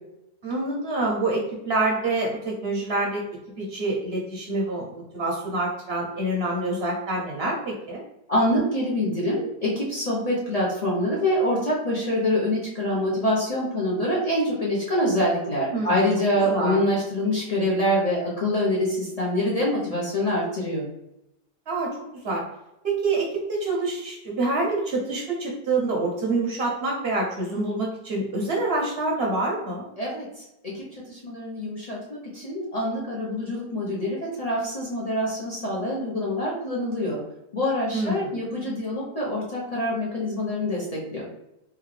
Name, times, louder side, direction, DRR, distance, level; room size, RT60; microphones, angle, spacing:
voice 1, 0.4-3.2 3.6-8.0 15.5-16.0 16.5-16.8 21.7-21.9 22.2-22.4 22.8-29.8 37.9-38.3, right 2 dB, 60° right, -1 dB, 0.6 m, -26 dB
voice 2, 8.3-20.8 30.0-37.2 37.5-41.3, left 1 dB, 75° left, -6 dB, 0.3 m, -25 dB
3.5 x 2.3 x 3.1 m, 0.88 s
omnidirectional pair, 1.8 m